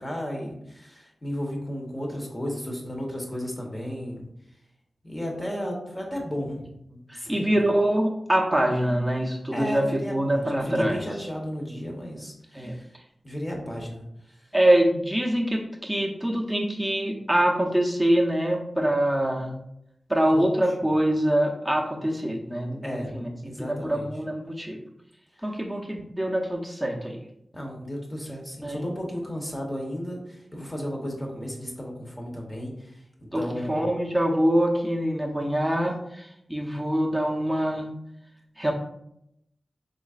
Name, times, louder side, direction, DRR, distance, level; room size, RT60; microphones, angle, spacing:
voice 1, 0.0-4.3 5.0-7.6 9.5-12.9 13.2-14.4 20.3-20.5 22.8-23.1 23.4-24.1 25.4-25.5 27.5-33.8, equal, 25° left, 0 dB, 1.0 m, -34 dB
voice 2, 7.1-9.8 10.1-11.0 12.5-12.7 14.5-19.5 20.1-24.8 25.4-27.2 28.6-28.9 33.3-33.4 33.7-37.9 38.6-38.7, right 1 dB, ahead, -2 dB, 0.6 m, -24 dB
3.9 x 3.1 x 2.4 m, 0.78 s
wide cardioid pair, 70°, 0 cm